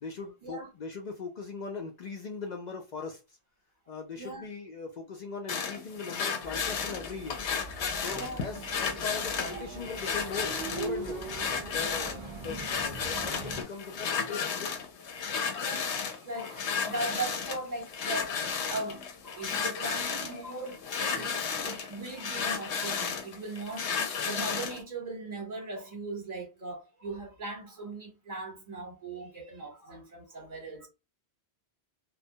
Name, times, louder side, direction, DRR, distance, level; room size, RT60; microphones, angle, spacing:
voice 1, 0.0-3.2 3.9-7.4 8.0-11.3 11.7-14.7, left 4 dB, 60° left, 0.5 m, -40 dB
voice 2, 4.2-4.5 8.1-8.5 12.0-12.2 15.5-30.9, right 2 dB, 40° right, 1.0 m, -39 dB
sound 1, 5.5-24.8, left 6 dB, 85° left, 0.9 m, -33 dB
sound 2, 6.4-13.6, right 3 dB, 65° right, 0.3 m, -42 dB
2.2 x 2.1 x 2.6 m
omnidirectional pair, 1.1 m